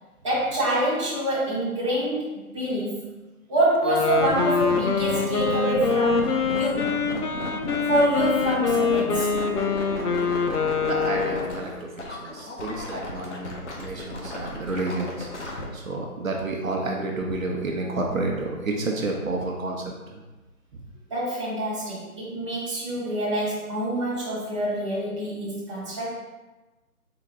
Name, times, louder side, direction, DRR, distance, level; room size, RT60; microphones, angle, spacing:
voice 1, 0.2-3.0 3.5-6.9 7.9-9.3 21.1-26.2, right 1 dB, 20° right, -9 dB, 0.8 m, -26 dB
Wind instrument woodwind instrument, 3.8-11.7, left 5 dB, 85° left, 0.6 m, -25 dB
sound 1, 4.0-15.6, left 2 dB, 50° left, 0.8 m, -34 dB
voice 2, 10.8-19.8 20.1-20.2 20.7-20.8, right 2 dB, 60° right, 0 dB, 0.7 m, -30 dB
3.9 x 2.8 x 3.5 m, 1.1 s
figure-of-eight pair, 160°, 45 cm